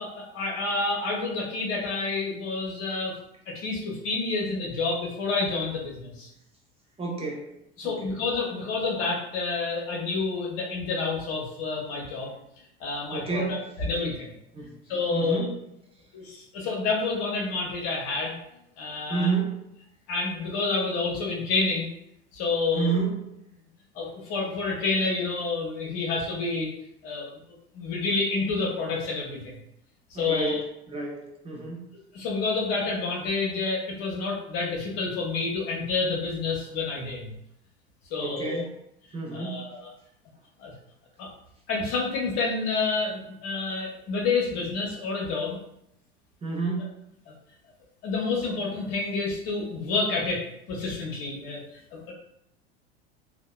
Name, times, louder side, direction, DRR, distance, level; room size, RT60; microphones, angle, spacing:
voice 1, 0.0-3.2 3.5-6.3 7.8-12.3 12.8-14.3 14.9-15.5 16.1-18.4 18.8-19.3 20.1-21.9 22.3-23.0 23.9-26.7 27.0-27.3 27.7-29.6 30.2-30.6 32.1-37.3 38.1-38.6 39.3-39.9 40.6-40.7 41.2-41.3 41.7-45.6 48.0-52.1, left 3 dB, 45° left, -2 dB, 0.7 m, -29 dB
voice 2, 7.0-7.5 7.8-8.1 13.1-13.6 14.5-14.7 15.1-15.5 19.1-19.6 22.7-23.2 30.1-31.8 38.2-38.7 39.1-39.6 46.4-46.9, right 4 dB, 15° right, -1 dB, 0.7 m, -29 dB
2.8 x 2.0 x 2.2 m, 0.79 s
figure-of-eight pair, 75°, 33 cm